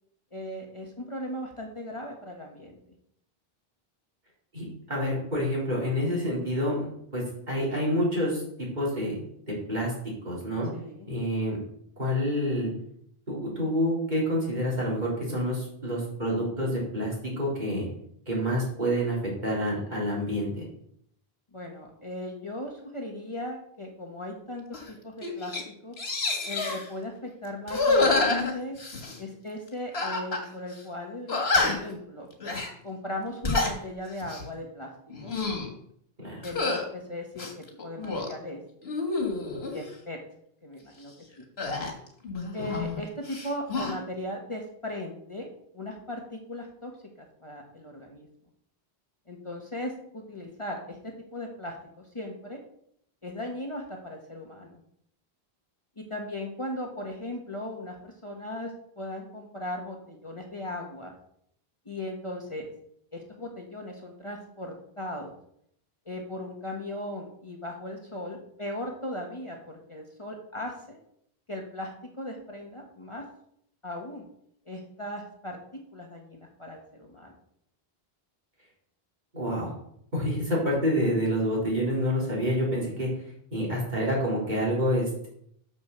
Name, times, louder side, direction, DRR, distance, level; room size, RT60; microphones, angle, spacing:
voice 1, 0.3-2.8 10.7-11.1 21.5-25.5 25.8-25.9 26.4-28.8 29.2-32.3 32.8-34.9 35.2-35.3 36.4-37.5 37.8-38.6 39.7-40.2 40.6-41.4 42.5-46.9 47.2-48.3 49.3-52.6 53.2-54.8 56.0-61.1 61.8-62.7 63.1-65.4 66.1-71.0 71.5-71.9 72.2-73.2 73.8-74.3 74.7-77.3, left 1 dB, 30° left, 1 dB, 1.2 m, -38 dB
voice 2, 4.5-6.9 7.1-8.4 8.8-9.2 9.5-9.9 10.2-10.7 11.1-11.6 12.0-12.7 13.3-17.9 18.3-20.5 36.2-36.4 42.6-42.7 79.3-79.7 80.1-83.1 83.5-85.3, equal, 45° right, -5 dB, 3.8 m, -28 dB
sound 1, 24.7-24.9 25.2-25.6 26.0-26.9 27.7-29.2 29.9-30.5 30.7-30.8 31.3-31.9 32.4-32.7 33.3-33.8 34.2-34.5 35.1-35.7 36.4-36.8 37.4-38.3 38.8-39.8 41.6-43.0 43.3-43.9, left 3 dB, 80° left, 1.9 m, -28 dB
6.7 x 6.3 x 6.7 m, 0.69 s
omnidirectional pair, 1.0 m